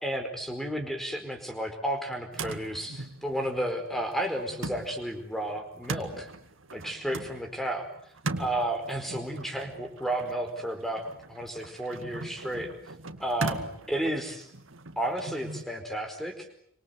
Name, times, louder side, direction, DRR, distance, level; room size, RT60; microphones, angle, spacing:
voice 1, 0.0-6.3 6.7-7.9 8.4-12.7 13.2-14.5 15.0-16.5, right 1 dB, ahead, 5 dB, 4.6 m, -32 dB
sound 1, 2.3-15.6, right 3 dB, 75° right, 2.1 m, -39 dB
29.0 x 25.0 x 8.1 m, 0.67 s
head